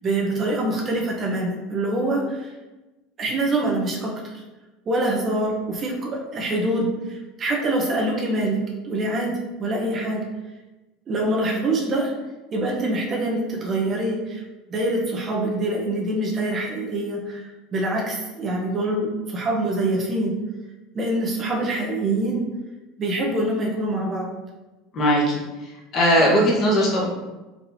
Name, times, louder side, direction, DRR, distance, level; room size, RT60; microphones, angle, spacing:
voice 1, 0.0-2.5 3.2-4.4 4.9-9.3 9.6-10.2 11.1-12.1 12.5-14.4 14.7-20.4 20.9-22.4 23.0-24.3, right 1 dB, 35° right, -2 dB, 1.0 m, -25 dB
voice 2, 24.9-27.0, equal, 45° left, -4 dB, 1.5 m, -20 dB
4.4 x 3.8 x 2.8 m, 1.1 s
supercardioid pair, 110°, 0 cm